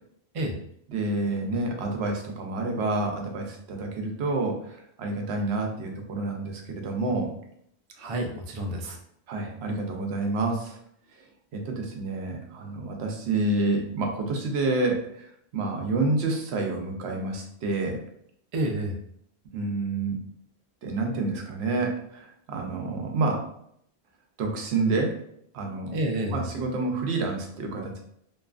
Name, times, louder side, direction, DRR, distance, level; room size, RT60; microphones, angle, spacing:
voice 1, 0.9-7.3 9.3-10.8 11.5-18.0 19.5-20.2 20.8-23.5 24.4-25.2 25.5-26.0 26.3-28.0, right 3 dB, 80° right, 2 dB, 0.9 m, -28 dB
voice 2, 8.0-9.0 18.5-19.0 25.9-26.5, right 1 dB, 50° right, 2 dB, 0.4 m, -29 dB
2.7 x 2.3 x 2.4 m, 0.69 s
omnidirectional pair, 1.1 m